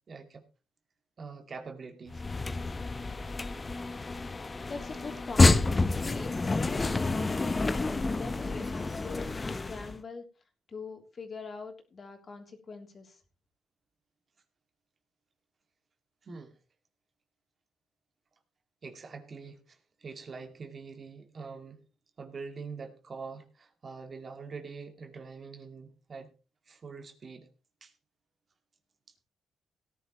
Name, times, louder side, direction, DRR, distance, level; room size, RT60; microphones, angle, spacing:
voice 1, 0.1-0.4 1.2-2.3 16.2-16.6 18.8-21.8 22.2-26.3 26.7-27.5 27.8-27.9, right 4 dB, 40° right, 6 dB, 2.3 m, -44 dB
sound 1, 2.1-10.0, left 3 dB, 25° left, 0.9 m, -28 dB
voice 2, 4.6-5.6 5.9-10.2 10.7-13.2, left 4 dB, 40° left, 4 dB, 3.2 m, -43 dB
17.5 x 11.0 x 3.1 m, 0.32 s
cardioid pair, 90°, 0 cm